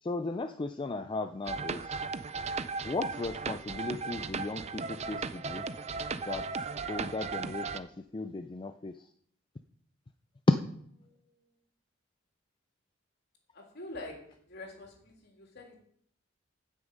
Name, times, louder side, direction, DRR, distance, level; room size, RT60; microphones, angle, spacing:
voice 1, 0.0-1.9 2.8-5.6 6.1-6.5 6.9-9.0, left 3 dB, 25° left, 7 dB, 0.4 m, -37 dB
sound 1, 1.5-7.8, right 4 dB, 35° right, 0.5 m, -36 dB
voice 2, 11.0-11.4 13.5-14.2 14.5-15.8, left 2 dB, 55° left, 0 dB, 3.2 m, -46 dB
15.5 x 6.4 x 5.3 m, 0.64 s
head